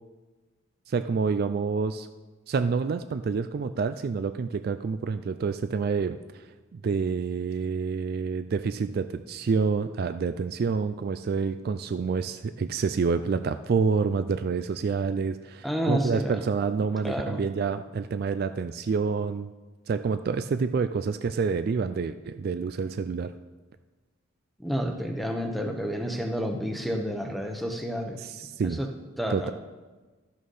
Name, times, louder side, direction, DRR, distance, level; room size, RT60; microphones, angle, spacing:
voice 1, 0.9-2.1 2.5-6.4 6.7-19.5 19.9-23.4 28.2-28.8 29.3-29.5, right 5 dB, 50° right, 11 dB, 0.3 m, -28 dB
voice 2, 15.6-16.5 17.0-17.4 24.6-28.2 28.6-28.9 29.2-29.5, equal, ahead, 4 dB, 0.9 m, -30 dB
12.5 x 6.5 x 5.5 m, 1.3 s
head